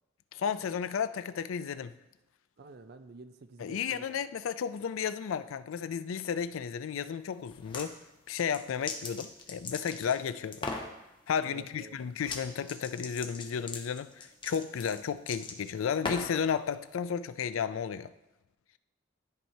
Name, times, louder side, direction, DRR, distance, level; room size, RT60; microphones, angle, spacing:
voice 1, 0.3-1.9 3.6-8.0 8.3-10.7 11.3-18.1, left 7 dB, 80° left, 13 dB, 0.4 m, -33 dB
voice 2, 2.6-4.1 11.4-12.0, right 3 dB, 50° right, 9 dB, 0.5 m, -49 dB
sound 1, 7.5-7.9 8.4-10.2 10.5-10.9 12.2-12.4 12.7-16.4, left 3 dB, 25° left, 0.7 m, -38 dB
13.0 x 4.5 x 2.7 m, 1.0 s
head